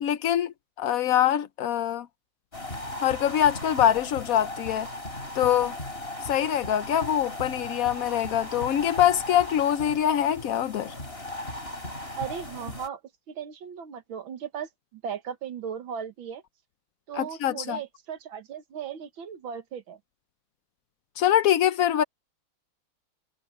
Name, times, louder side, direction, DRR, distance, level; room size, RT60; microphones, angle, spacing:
voice 1, 0.0-2.1 3.0-4.9 5.3-5.8 6.2-10.9 17.2-17.8 21.2-22.0, left 10 dB, 85° left, 0.7 m, -24 dB
sound 1, 2.5-12.9, left 1 dB, 25° left, 5.8 m, -37 dB
voice 2, 12.2-13.0 13.3-16.4 17.1-20.0, right 8 dB, 75° right, 2.1 m, -37 dB
omnidirectional pair, 2.2 m